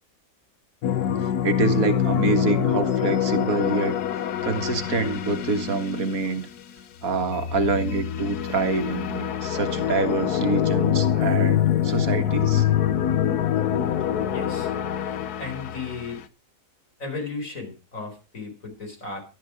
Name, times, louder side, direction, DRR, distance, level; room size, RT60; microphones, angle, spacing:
sound 1, 0.8-6.6 7.0-16.2, left 10 dB, 85° left, 1.4 m, -25 dB
voice 1, 1.2-4.0 4.4-6.5 7.0-12.7, right 4 dB, 65° right, 2.0 m, -26 dB
voice 2, 14.3-14.7 15.0-16.2 17.0-19.2, left 4 dB, 60° left, 5.2 m, -35 dB
13.5 x 12.0 x 4.9 m
omnidirectional pair, 1.6 m